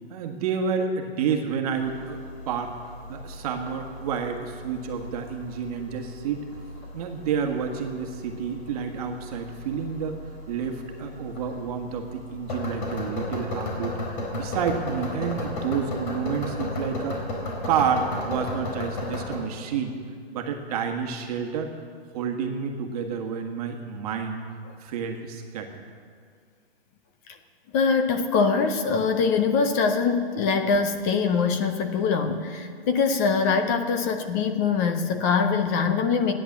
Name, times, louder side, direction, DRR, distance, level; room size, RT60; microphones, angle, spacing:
voice 1, 0.1-2.7 3.1-6.5 6.9-10.2 10.5-17.2 17.6-20.0 20.3-21.7 22.1-24.4 24.8-25.8, right 6 dB, 35° right, 3 dB, 1.5 m, -29 dB
sound 1, 1.7-19.4, left 1 dB, 50° left, 4.2 m, -35 dB
voice 2, 27.7-36.3, left 5 dB, 15° left, 7 dB, 0.5 m, -23 dB
16.0 x 10.0 x 7.3 m, 2.1 s
hypercardioid pair, 155°, 32 cm